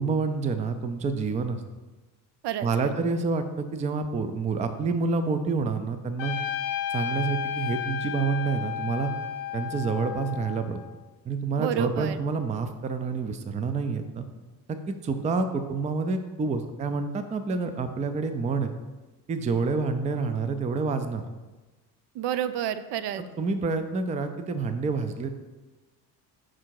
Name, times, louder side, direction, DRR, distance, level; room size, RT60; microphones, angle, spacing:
voice 1, 0.0-1.6 2.6-6.4 6.9-9.1 9.5-10.8 11.3-14.2 14.9-18.7 19.3-21.3 23.4-25.3, right 4 dB, 20° right, 9 dB, 0.3 m, -28 dB
voice 2, 2.4-2.9 11.6-12.2 22.1-23.2, right 10 dB, 70° right, 13 dB, 0.5 m, -30 dB
Trumpet, 6.2-10.9, left 9 dB, 75° left, 0.6 m, -32 dB
6.1 x 3.7 x 4.6 m, 1.2 s
cardioid pair, 95°, 43 cm